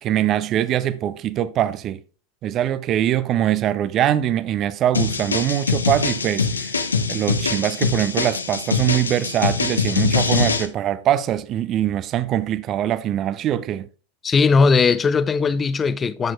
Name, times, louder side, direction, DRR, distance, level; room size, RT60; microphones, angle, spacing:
voice 1, 0.0-2.0 2.4-6.7 7.1-13.9, right 11 dB, 30° right, 0.5 m, -22 dB
sound 1, 4.9-10.7, left 4 dB, 75° left, 0.8 m, -23 dB
voice 2, 14.2-16.3, left 4 dB, 20° left, 0.5 m, -18 dB
10.5 x 7.7 x 2.4 m
figure-of-eight pair, 90°, 0 cm